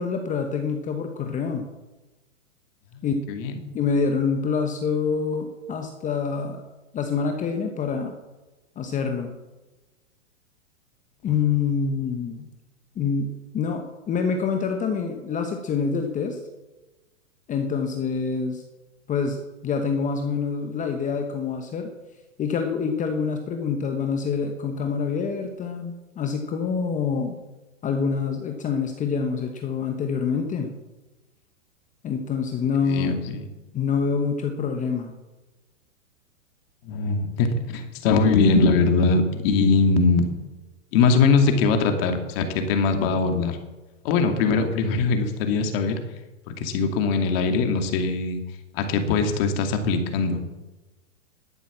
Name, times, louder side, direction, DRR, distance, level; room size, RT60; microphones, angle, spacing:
voice 1, 0.0-1.7 3.0-3.3 3.7-6.6 6.9-8.1 8.8-9.3 11.2-12.4 13.0-16.4 17.5-18.6 19.1-21.9 22.4-27.3 27.8-30.7 32.0-33.2 33.7-35.1, left 5 dB, 20° left, 5 dB, 1.0 m, -26 dB
voice 2, 2.9-3.5 32.8-33.4 36.9-40.2 40.9-43.6 44.0-46.0 46.6-48.4 48.7-50.4, left 4 dB, 50° left, 5 dB, 2.5 m, -21 dB
12.0 x 9.2 x 7.4 m, 1.1 s
hypercardioid pair, 135°, 38 cm